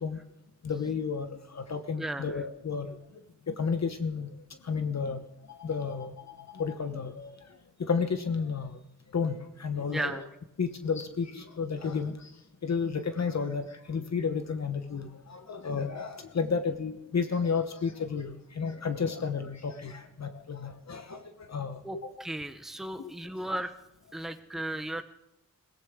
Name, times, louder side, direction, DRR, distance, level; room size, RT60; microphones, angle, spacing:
voice 1, 0.6-1.3 1.5-2.9 3.5-4.3 4.7-5.2 5.5-7.4 7.8-8.7 9.1-10.3 10.6-12.1 12.6-21.2 21.5-21.8 23.0-23.1, left 5 dB, 50° left, 8 dB, 1.0 m, -32 dB
voice 2, 2.0-2.4 9.9-10.2 21.8-23.7 24.1-25.0, right 1 dB, ahead, 8 dB, 0.8 m, -35 dB
22.0 x 17.0 x 3.7 m, 0.85 s
wide cardioid pair, 140°, 34 cm